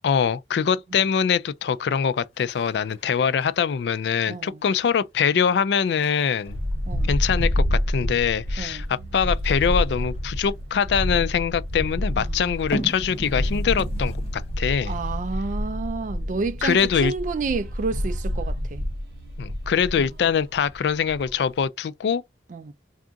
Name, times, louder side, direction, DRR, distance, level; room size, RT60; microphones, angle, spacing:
voice 1, 0.0-6.6 7.1-15.0 16.6-17.1 19.4-22.2, left 7 dB, 70° left, 0.3 m, -23 dB
sound 1, 1.7-2.0 2.3-4.1 4.5-4.9 5.4-5.5 5.9-7.7 9.3-11.2 12.5-14.8 15.1-15.2, equal, 35° left, 0.9 m, -37 dB
voice 2, 4.3-4.6 6.9-7.1 8.6-8.8 12.1-12.5 14.9-18.8 20.0-20.1 22.5-22.7, right 4 dB, 45° right, 0.3 m, -30 dB
sound 2, 6.5-21.6, equal, 60° right, 1.4 m, -28 dB
3.6 x 2.4 x 3.8 m
head